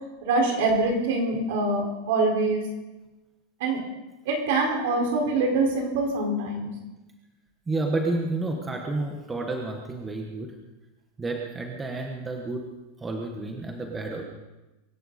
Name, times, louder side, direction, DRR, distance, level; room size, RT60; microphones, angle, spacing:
voice 1, 0.2-2.6 3.6-3.8 4.2-6.7, right 3 dB, 60° right, 1 dB, 4.5 m, -24 dB
voice 2, 7.7-10.5 11.2-12.7 13.0-14.2, right 2 dB, 10° right, 2 dB, 1.1 m, -30 dB
23.5 x 12.0 x 4.1 m, 1.1 s
supercardioid pair, 175°, 0 cm